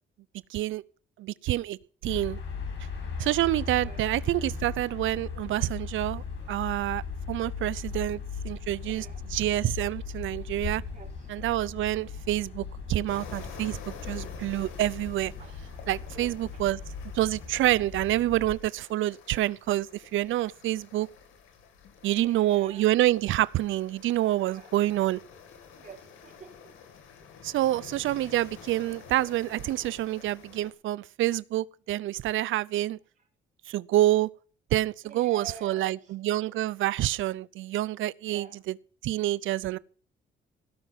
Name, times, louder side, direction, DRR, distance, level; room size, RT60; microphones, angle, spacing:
voice 1, 0.5-0.8 1.2-2.4 3.2-7.0 7.3-10.8 11.3-15.3 15.9-16.8 17.1-21.1 22.0-25.2 27.4-33.0 33.7-34.3 34.7-38.8 39.0-39.8, right 15 dB, 80° right, 0.6 m, -27 dB
sound 1, 2.1-18.6, left 5 dB, 70° left, 5.8 m, -38 dB
voice 2, 8.8-9.2 10.9-11.3 15.4-15.5 16.1-16.3 22.1-22.9 24.5-24.7 25.7-26.5 35.0-36.0 38.3-38.6, right 6 dB, 40° right, 4.9 m, -47 dB
sound 2, 13.1-30.7, left 6 dB, 90° left, 2.5 m, -49 dB
17.0 x 6.1 x 7.2 m
cardioid pair, 90°, 20 cm